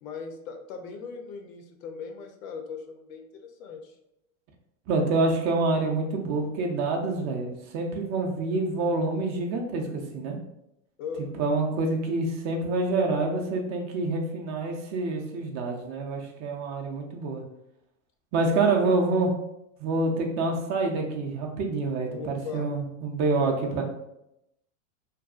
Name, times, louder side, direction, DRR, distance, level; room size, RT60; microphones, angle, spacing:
voice 1, 0.0-4.0 11.0-11.4 18.4-19.1 22.1-22.7, left 5 dB, 70° left, 5 dB, 0.6 m, -39 dB
voice 2, 4.9-10.4 11.4-17.4 18.3-19.3 19.8-23.8, right 3 dB, 40° right, 2 dB, 0.5 m, -27 dB
2.6 x 2.3 x 2.4 m, 0.83 s
supercardioid pair, 110°, 42 cm